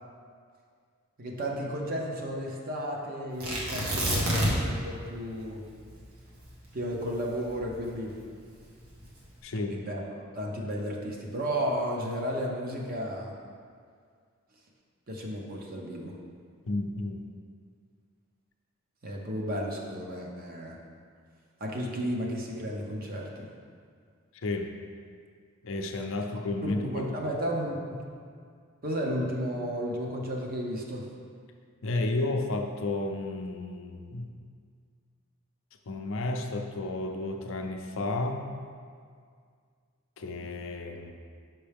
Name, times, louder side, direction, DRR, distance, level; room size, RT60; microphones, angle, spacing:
voice 1, 1.2-5.6 6.7-8.2 9.7-10.0 10.3-13.3 15.1-16.2 19.0-20.8 21.6-23.5 26.6-28.0 28.8-31.0, equal, 45° right, -1 dB, 0.8 m, -33 dB
Tearing, 3.4-4.8 5.1-5.2 5.7-8.1 8.8-9.3, equal, 85° right, 1.4 m, -28 dB
voice 2, 9.4-9.8 16.7-17.3 24.3-24.7 25.6-27.1 31.8-34.3 35.9-38.4 40.2-41.1, left 2 dB, 60° left, 4 dB, 0.5 m, -32 dB
5.9 x 5.5 x 3.5 m, 2.1 s
head